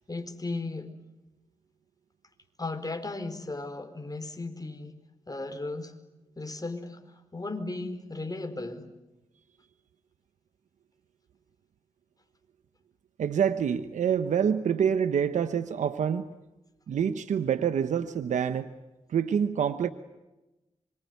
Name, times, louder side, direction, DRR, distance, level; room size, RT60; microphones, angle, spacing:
voice 1, 0.1-0.9 2.6-5.0 5.3-5.9 6.4-8.9, left 2 dB, 30° left, 8 dB, 4.6 m, -36 dB
voice 2, 13.2-16.3 16.9-18.7 19.1-19.9, right 8 dB, 85° right, 11 dB, 1.0 m, -26 dB
26.0 x 24.0 x 9.5 m, 1.0 s
cardioid pair, 45°, 12 cm